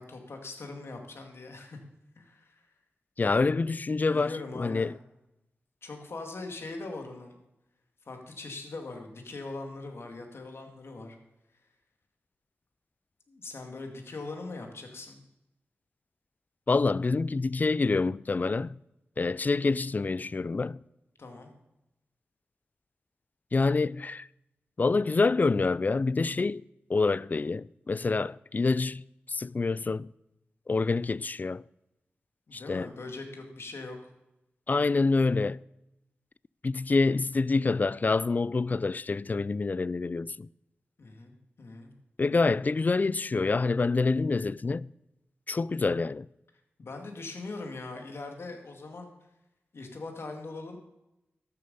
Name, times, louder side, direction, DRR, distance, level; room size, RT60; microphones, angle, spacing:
voice 1, 0.0-1.8 2.2-2.7 4.1-4.9 5.8-7.4 8.1-11.2 13.3-15.2 21.2-21.5 32.5-34.0 41.0-41.9 46.8-49.1 49.7-50.8, left 3 dB, 65° left, 2.2 m, -41 dB
voice 2, 3.2-4.9 16.7-18.8 19.2-20.8 23.5-24.3 24.8-26.6 26.9-29.0 29.3-30.1 30.7-31.6 32.5-32.9 34.7-35.6 36.6-40.5 42.2-44.9 45.5-46.3, left 3 dB, 40° left, 0.3 m, -27 dB
13.0 x 7.9 x 5.5 m
cardioid pair, 50°, 4 cm